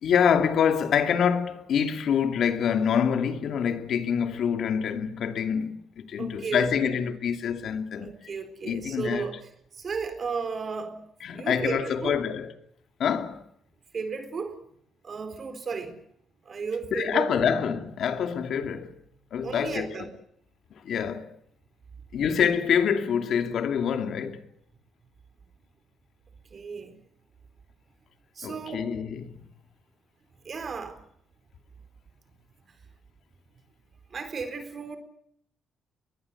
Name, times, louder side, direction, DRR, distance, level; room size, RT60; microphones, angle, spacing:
voice 1, 0.0-5.8 6.1-8.1 8.6-9.3 11.2-12.5 13.0-13.4 16.9-19.0 19.3-19.9 20.8-21.3 22.1-24.5 28.4-29.4, left 7 dB, 65° left, 2.5 m, -26 dB
voice 2, 6.2-7.0 8.0-9.4 9.7-12.2 13.9-14.6 15.0-16.0 16.4-17.6 19.4-20.1 26.5-27.0 28.3-28.9 30.4-31.0 32.6-32.7 34.1-35.0, right 5 dB, 45° right, 4.1 m, -34 dB
22.0 x 20.5 x 9.7 m
cardioid pair, 90°, 0 cm